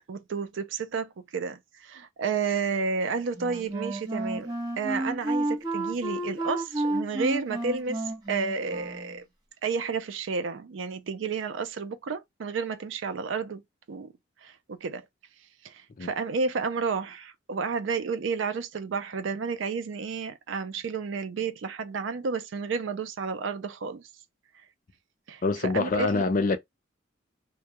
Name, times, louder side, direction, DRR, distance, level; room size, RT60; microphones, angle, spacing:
voice 1, 0.1-9.2 9.6-13.6 13.9-14.1 14.4-15.0 15.6-24.0 25.3-26.2, right 5 dB, 75° right, 0.4 m, -31 dB
Wind instrument woodwind instrument, 3.3-9.2, right 2 dB, 20° right, 0.8 m, -31 dB
voice 2, 25.4-26.6, left 3 dB, 45° left, 0.4 m, -25 dB
2.2 x 2.2 x 2.8 m
head